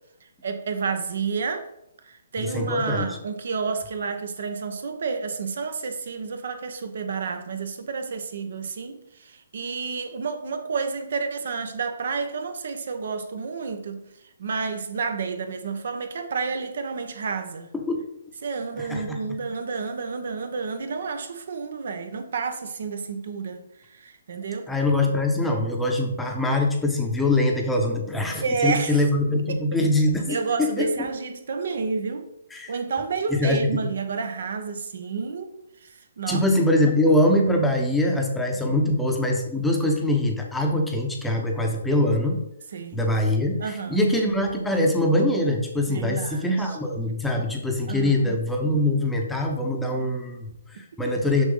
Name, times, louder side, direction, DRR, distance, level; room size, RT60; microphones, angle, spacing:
voice 1, 0.4-1.7 2.0-14.0 14.4-17.7 18.4-24.7 28.4-29.0 29.5-29.6 30.3-32.3 32.7-35.5 35.8-36.4 38.7-38.8 42.7-43.0 43.6-44.0 45.9-46.8 47.9-48.4 50.7-50.8, right 5 dB, 65° right, 1.1 m, -30 dB
voice 2, 2.4-3.1 17.7-18.0 18.8-19.2 24.7-31.1 32.5-32.7 33.3-33.6 36.3-42.4 42.9-51.4, left 1 dB, 5° left, 0.9 m, -23 dB
6.7 x 6.1 x 3.9 m
hypercardioid pair, 165°, 0 cm